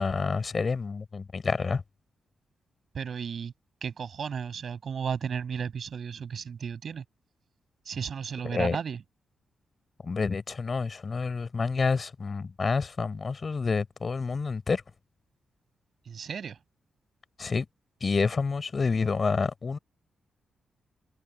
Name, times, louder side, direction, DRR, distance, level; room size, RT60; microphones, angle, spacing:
voice 1, 0.0-1.8 8.4-8.8 10.0-14.8 17.4-17.7 18.0-19.8, left 4 dB, 45° left, 3.8 m, -28 dB
voice 2, 2.9-3.5 3.8-7.0 7.9-9.0 16.1-16.5, right 7 dB, 60° right, 6.7 m, -34 dB
hypercardioid pair, 40°, 0 cm